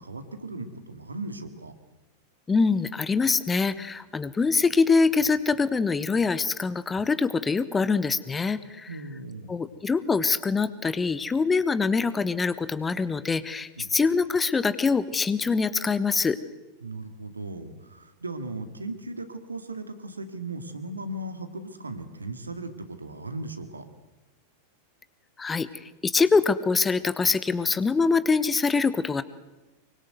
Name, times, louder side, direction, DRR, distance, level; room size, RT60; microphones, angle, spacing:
voice 1, 0.0-1.7 8.9-9.6 13.8-14.0 16.8-23.9, right 2 dB, 80° right, 7 dB, 2.4 m, -37 dB
voice 2, 2.5-8.9 9.5-16.4 25.4-25.7 26.0-29.2, left 4 dB, 15° left, 15 dB, 1.1 m, -24 dB
25.0 x 23.5 x 8.0 m, 1.1 s
figure-of-eight pair, 90°, 0 cm